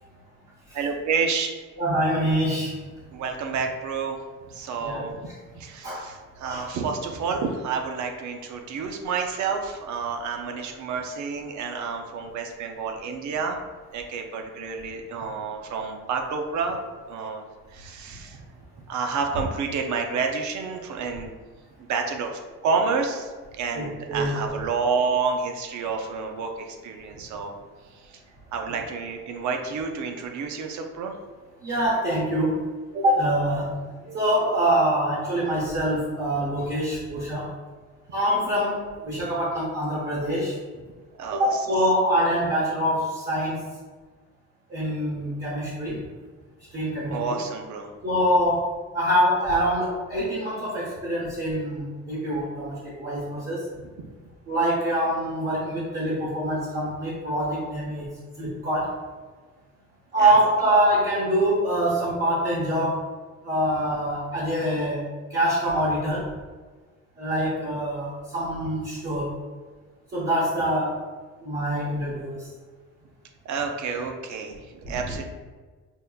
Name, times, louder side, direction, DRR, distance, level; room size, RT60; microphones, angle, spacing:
voice 1, 0.7-1.5 3.1-4.2 4.5-5.1 5.5-13.6 13.9-16.8 17.1-17.4 17.7-18.4 18.9-21.3 21.9-27.5 27.9-28.2 28.5-31.1 39.1-39.2 41.2-41.7 45.9-46.1 47.1-47.9 60.2-60.4 64.4-64.5 73.4-75.2, right 5 dB, 70° right, 4 dB, 0.6 m, -29 dB
voice 2, 1.8-2.8 4.8-5.0 5.8-6.0 6.4-6.7 23.7-24.4 31.6-32.6 32.9-33.8 34.0-37.5 38.1-40.6 41.3-43.6 44.7-46.0 46.7-47.4 48.0-53.6 54.5-58.1 58.4-59.0 60.1-63.1 63.4-66.3 67.2-69.4 70.1-71.0 71.4-72.5 74.8-75.0, right 1 dB, 35° right, -7 dB, 1.0 m, -25 dB
5.4 x 2.1 x 2.3 m, 1.4 s
cardioid pair, 90°, 30 cm